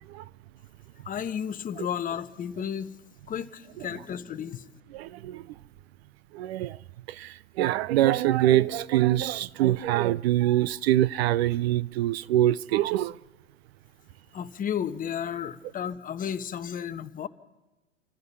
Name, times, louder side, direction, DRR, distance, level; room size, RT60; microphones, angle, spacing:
voice 1, 1.0-3.0 3.3-4.7 14.3-17.3, left 8 dB, 20° left, 1.0 m, -33 dB
voice 2, 4.9-5.4 6.3-6.8 7.2-13.1, right 13 dB, 50° right, 0.6 m, -24 dB
28.5 x 14.5 x 7.0 m
hypercardioid pair, 105°, 40 cm